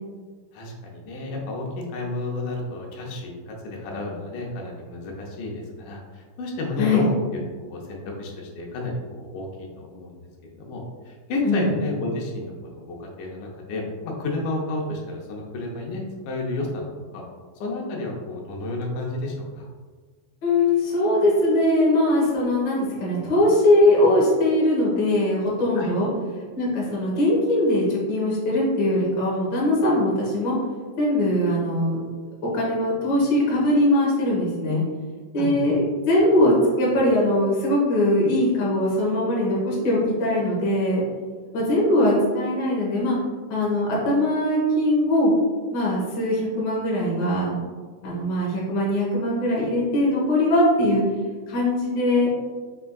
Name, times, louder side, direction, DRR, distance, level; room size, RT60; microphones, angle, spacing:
voice 1, 0.5-7.4 7.7-10.2 10.4-16.9 17.1-17.2 17.6-19.7 25.8-26.0 35.4-35.7, left 2 dB, 90° left, -1 dB, 2.3 m, -31 dB
voice 2, 20.4-26.1 26.5-30.5 31.0-32.0 32.5-34.8 35.3-35.7 36.1-41.0 41.5-43.2 43.5-45.3 45.7-47.6 48.0-51.0 51.5-52.3, left 1 dB, 50° left, -5 dB, 1.4 m, -21 dB
5.4 x 3.4 x 2.3 m, 1.5 s
omnidirectional pair, 3.5 m